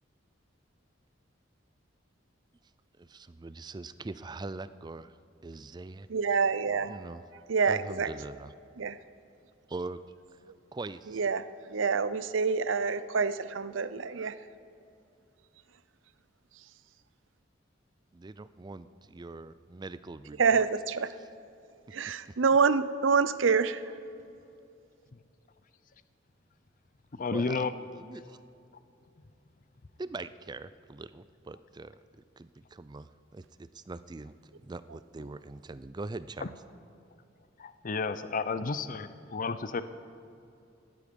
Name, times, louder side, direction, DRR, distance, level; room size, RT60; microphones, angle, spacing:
voice 1, 3.0-5.2 5.4-6.1 6.7-7.2 7.7-8.5 9.7-10.0 10.3-10.4 10.7-11.2 18.1-20.7 27.3-28.4 30.0-32.0 32.4-34.3 34.6-36.5, right 3 dB, 20° right, 14 dB, 0.4 m, -42 dB
voice 2, 6.1-7.0 7.5-8.1 8.8-9.0 11.1-11.4 11.7-14.4 20.4-21.1 21.9-23.8, right 5 dB, 85° right, 15 dB, 0.6 m, -26 dB
voice 3, 27.2-27.7 36.4-36.5 37.6-39.8, left 4 dB, 45° left, 13 dB, 0.6 m, -32 dB
18.0 x 13.0 x 5.3 m, 2.6 s
head